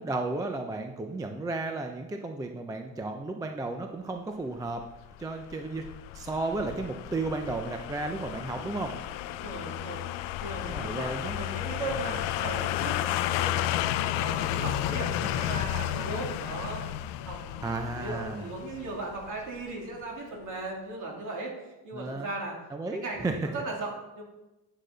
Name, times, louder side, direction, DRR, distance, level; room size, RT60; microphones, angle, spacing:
voice 1, 0.0-4.8 5.2-5.8 6.1-8.9 10.6-11.4 11.9-12.2 14.9-15.6 17.6-18.5 21.9-22.3 22.7-23.4, right 2 dB, 10° right, 5 dB, 0.3 m, -34 dB
sound 1, 4.8-19.7 20.0-20.1, left 13 dB, 85° left, 0.6 m, -32 dB
voice 2, 9.3-10.0 10.4-13.8 14.1-22.6 22.9-24.2, right 2 dB, 45° right, -1 dB, 2.5 m, -37 dB
9.6 x 6.6 x 3.8 m, 1.0 s
cardioid pair, 155°, 42 cm